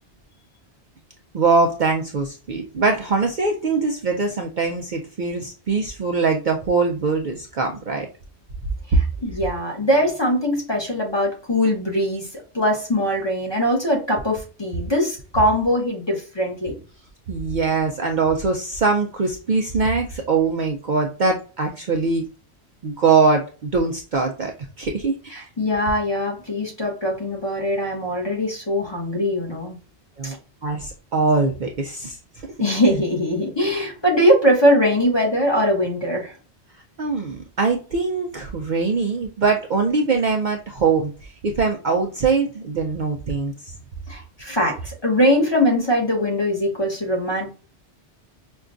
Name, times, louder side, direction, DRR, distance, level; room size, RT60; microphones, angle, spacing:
voice 1, 1.3-8.1 17.3-22.2 22.8-24.5 24.8-25.5 30.2-30.4 30.6-32.5 37.0-43.5, right 4 dB, 55° right, 2 dB, 0.6 m, -22 dB
voice 2, 9.2-16.7 25.3-29.8 30.2-30.4 32.6-36.3 44.1-47.5, equal, 25° left, -1 dB, 0.9 m, -21 dB
5.3 x 2.3 x 2.5 m, 0.35 s
omnidirectional pair, 1.2 m